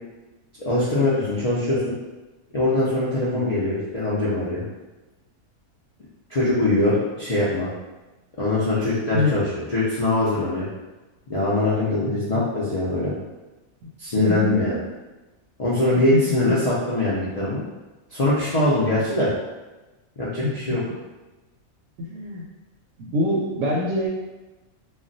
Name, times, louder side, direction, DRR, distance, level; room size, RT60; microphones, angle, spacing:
voice 1, 0.7-1.8 2.5-4.6 6.3-7.7 8.4-10.7 11.3-13.1 14.0-14.8 15.6-17.6 18.1-19.3 20.2-20.8, left 2 dB, 65° left, -9 dB, 0.3 m, -22 dB
voice 2, 12.0-12.4 14.1-14.8 15.8-16.2 16.5-16.6 20.4-20.5 22.0-22.4 23.0-24.1, left 1 dB, 70° right, -3 dB, 0.8 m, -25 dB
2.4 x 2.1 x 3.8 m, 1.1 s
omnidirectional pair, 1.5 m